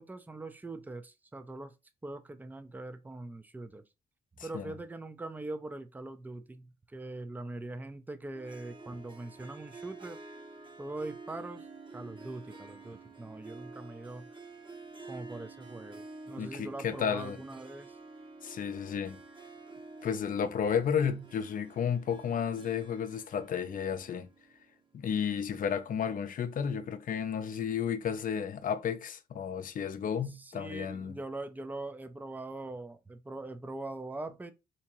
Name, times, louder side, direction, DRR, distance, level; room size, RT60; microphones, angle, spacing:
voice 1, 0.0-1.7 2.0-3.8 4.4-10.2 10.8-14.3 15.1-18.0 30.3-34.5, right 2 dB, 10° right, 0.5 m, -42 dB
Harp, 8.3-24.8, right 3 dB, 30° right, 0.8 m, -49 dB
voice 2, 16.4-17.4 18.4-19.2 20.0-24.3 24.9-31.1, left 7 dB, 55° left, 0.6 m, -32 dB
3.4 x 2.9 x 3.0 m
cardioid pair, 85°, 17 cm